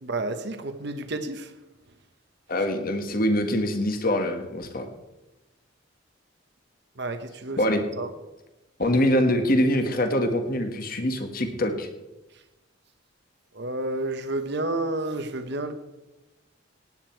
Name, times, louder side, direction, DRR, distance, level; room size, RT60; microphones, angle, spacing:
voice 1, 0.0-1.5 7.0-7.6 8.0-8.1 13.5-15.7, right 2 dB, 55° right, 8 dB, 1.1 m, -30 dB
voice 2, 2.5-4.9 7.6-7.8 8.8-11.9, left 1 dB, 45° left, 6 dB, 1.6 m, -24 dB
17.0 x 9.9 x 4.6 m, 1.0 s
head